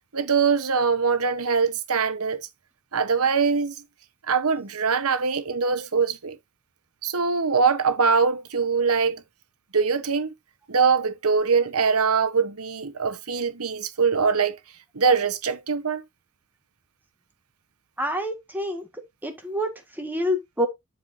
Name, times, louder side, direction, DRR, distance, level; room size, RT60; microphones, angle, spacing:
voice 1, 0.1-2.5 2.9-3.7 4.3-6.4 7.0-9.2 9.7-10.3 10.7-14.6 14.9-16.0, right 5 dB, 85° right, 1.1 m, -23 dB
voice 2, 18.0-18.8 19.2-19.7 20.0-20.7, equal, 10° right, 1.6 m, -27 dB
11.5 x 4.7 x 2.7 m
head